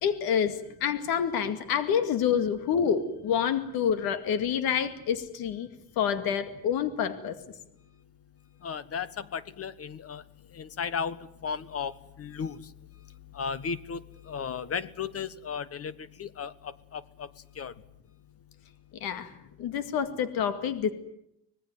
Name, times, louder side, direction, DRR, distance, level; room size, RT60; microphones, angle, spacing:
voice 1, 0.0-0.6 0.8-5.7 6.0-7.3 19.0-19.3 19.6-20.9, left 8 dB, 90° left, 10 dB, 2.3 m, -27 dB
voice 2, 8.6-10.2 10.5-11.2 11.4-11.9 12.2-12.6 13.3-15.9 16.2-17.3 17.6-17.7, left 6 dB, 40° left, 16 dB, 1.3 m, -35 dB
26.0 x 19.0 x 9.4 m, 0.78 s
cardioid pair, 135°, 35 cm